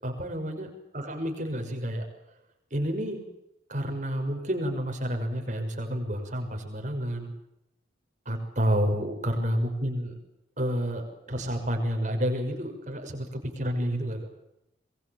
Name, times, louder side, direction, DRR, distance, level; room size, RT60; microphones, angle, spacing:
voice 1, 0.0-2.1 2.7-3.2 3.7-7.3 8.3-10.1 10.6-14.3, equal, 40° right, 5 dB, 6.2 m, -30 dB
27.0 x 22.0 x 7.4 m, 0.84 s
head